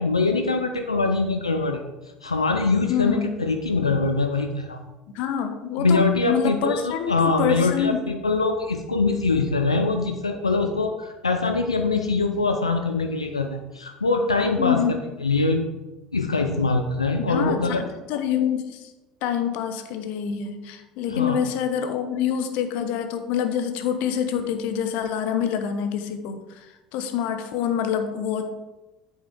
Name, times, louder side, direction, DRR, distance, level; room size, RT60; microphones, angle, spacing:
voice 1, 0.0-1.8 2.2-4.8 5.8-14.8 15.2-15.6 16.1-17.8 21.1-21.4, left 3 dB, 85° left, 5 dB, 0.5 m, -23 dB
voice 2, 2.9-3.3 5.1-8.0 14.6-14.9 17.2-18.9 19.2-26.4 26.9-28.5, left 8 dB, 55° left, 8 dB, 1.0 m, -26 dB
8.7 x 7.8 x 3.7 m, 1.1 s
figure-of-eight pair, 65°, 3 cm